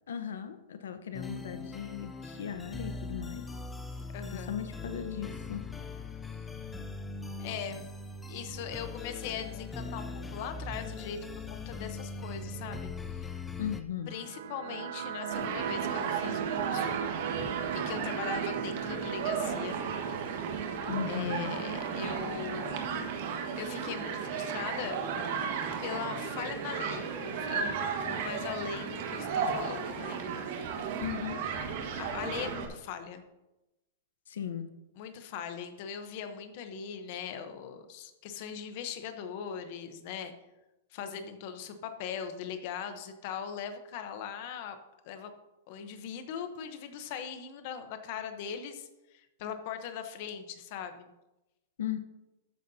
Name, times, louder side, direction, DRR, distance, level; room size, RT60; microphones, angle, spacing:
voice 1, 0.1-3.5 4.3-5.7 13.6-14.2 20.9-21.5 31.0-31.4 34.3-34.7 51.8-52.0, left 9 dB, 85° left, 10 dB, 0.9 m, -37 dB
sound 1, 1.1-13.8, left 3 dB, 5° left, 0.5 m, -41 dB
voice 2, 4.1-4.6 7.4-7.9 8.3-11.2 11.5-12.9 14.1-17.0 17.7-19.9 21.1-22.8 23.6-25.0 25.8-30.2 30.7-30.9 32.0-33.2 35.0-40.3 40.9-44.8 45.0-45.3 45.7-51.1, left 7 dB, 40° left, 8 dB, 0.9 m, -40 dB
sound 2, 14.0-25.0, right 9 dB, 60° right, 0.6 m, -39 dB
Human group actions, 15.3-32.6, right 6 dB, 45° right, 1.6 m, -34 dB
13.0 x 9.3 x 2.8 m, 0.99 s
supercardioid pair, 175°, 0 cm